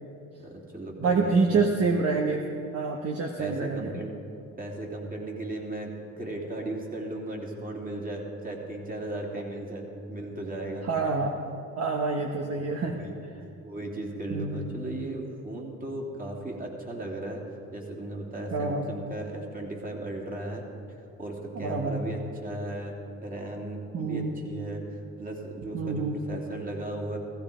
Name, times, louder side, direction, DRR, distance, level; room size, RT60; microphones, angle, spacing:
voice 1, 0.4-1.6 3.4-4.1 4.6-10.9 12.8-17.4 17.7-27.2, right 1 dB, 30° right, 0 dB, 2.9 m, -36 dB
voice 2, 1.0-2.4 2.7-4.0 10.9-11.3 11.8-12.9 14.3-14.7 18.5-18.9 21.5-22.0 23.9-24.3 25.7-26.2, right 4 dB, 50° right, 2 dB, 1.2 m, -27 dB
16.0 x 15.0 x 5.0 m, 2.8 s
cardioid pair, 90°, 30 cm